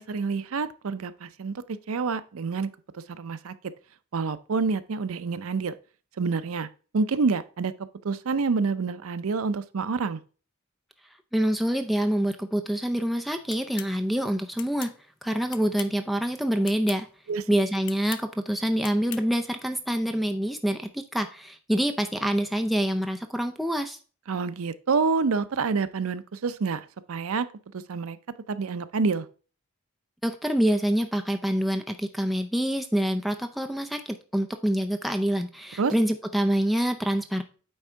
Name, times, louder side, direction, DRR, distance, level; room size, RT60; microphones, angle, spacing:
voice 1, 0.0-2.7 3.1-3.5 4.1-5.7 6.2-6.7 6.9-7.7 8.0-10.2 17.3-17.4 24.3-27.5 27.9-28.2 28.5-29.3 35.8-35.9, right 4 dB, 75° right, 0.5 m, -27 dB
voice 2, 11.3-14.9 15.2-17.1 17.5-24.0 30.2-37.4, equal, ahead, 0.5 m, -26 dB
sound 1, 13.5-13.9 14.6-15.0 15.5-16.0 16.6-17.0 17.8-18.3 18.8-19.3, left 13 dB, 60° left, 0.4 m, -40 dB
8.8 x 3.6 x 4.4 m
head